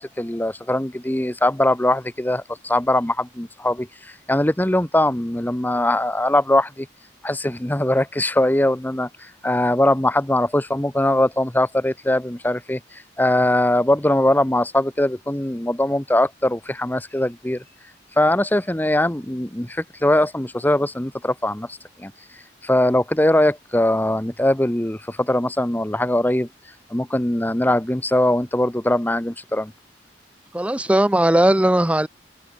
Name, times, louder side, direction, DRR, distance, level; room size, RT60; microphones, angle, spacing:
voice 1, 0.0-6.9 7.2-17.6 18.2-22.1 22.6-26.5 26.9-29.7, left 1 dB, 10° left, 1.0 m, -21 dB
voice 2, 30.5-32.1, right 1 dB, 5° right, 0.5 m, -17 dB
open air
head